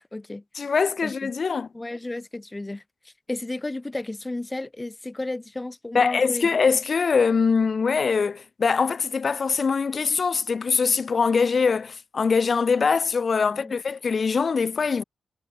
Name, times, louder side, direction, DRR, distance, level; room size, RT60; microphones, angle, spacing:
voice 1, 0.0-0.4 1.0-1.3 1.7-6.5 13.4-13.7, left 2 dB, 20° left, 1.4 m, -33 dB
voice 2, 0.5-1.7 5.9-15.0, left 5 dB, 50° left, 1.6 m, -23 dB
cardioid pair, 75°, 0 cm